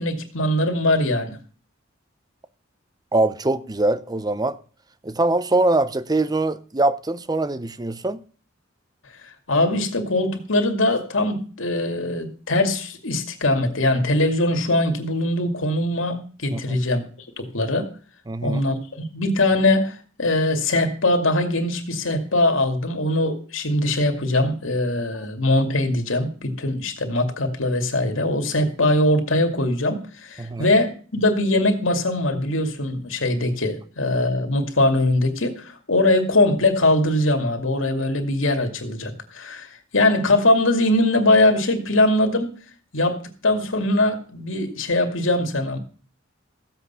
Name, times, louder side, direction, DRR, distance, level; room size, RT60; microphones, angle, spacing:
voice 1, 0.0-1.4 9.5-17.0 17.4-17.9 18.4-42.6 42.9-45.8, left 2 dB, 85° left, 2.3 m, -21 dB
voice 2, 3.1-4.6 5.0-8.2 16.5-16.8 18.3-18.6 30.4-30.7, right 2 dB, 20° right, 0.7 m, -23 dB
15.0 x 8.2 x 5.7 m
head